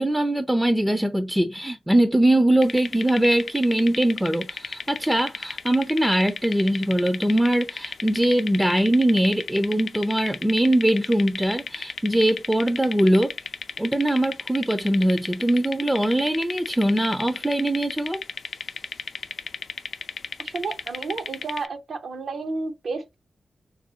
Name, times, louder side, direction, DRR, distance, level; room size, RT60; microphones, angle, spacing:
voice 1, 0.0-13.3 13.8-18.2, right 1 dB, 10° right, 0.3 m, -22 dB
sound 1, 2.6-21.7, left 5 dB, 70° left, 0.3 m, -34 dB
voice 2, 20.4-23.2, right 3 dB, 75° right, 0.6 m, -31 dB
3.3 x 2.4 x 2.7 m
wide cardioid pair, 80°, 0 cm